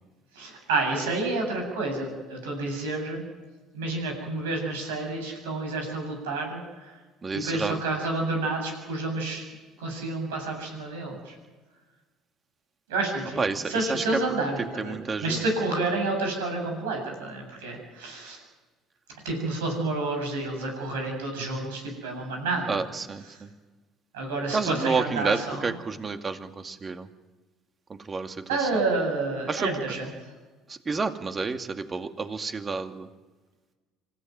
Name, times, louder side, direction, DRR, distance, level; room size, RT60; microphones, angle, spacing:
voice 1, 0.3-3.2 3.7-6.6 7.3-9.5 9.8-11.3 12.9-18.4 19.2-22.8 24.1-25.7 28.5-30.1, right 2 dB, 85° right, 2 dB, 7.8 m, -29 dB
voice 2, 7.2-7.8 13.4-14.0 14.8-15.4 22.7-23.5 24.5-27.1 27.9-28.7 29.5-29.7 30.7-33.1, right 4 dB, 30° right, 7 dB, 2.2 m, -30 dB
26.0 x 15.5 x 9.4 m, 1.3 s
hypercardioid pair, 65°, 0 cm